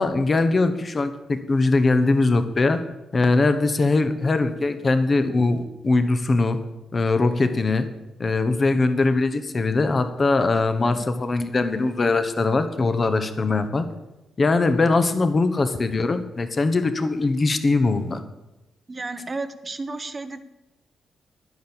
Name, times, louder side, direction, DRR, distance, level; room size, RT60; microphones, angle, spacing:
voice 1, 0.0-2.8 3.1-6.6 6.9-7.9 8.2-13.9 14.4-18.2, left 3 dB, 30° left, 10 dB, 1.2 m, -21 dB
voice 2, 18.9-20.4, right 3 dB, 25° right, 11 dB, 1.0 m, -32 dB
12.0 x 10.5 x 7.1 m, 0.98 s
wide cardioid pair, 140°, 0 cm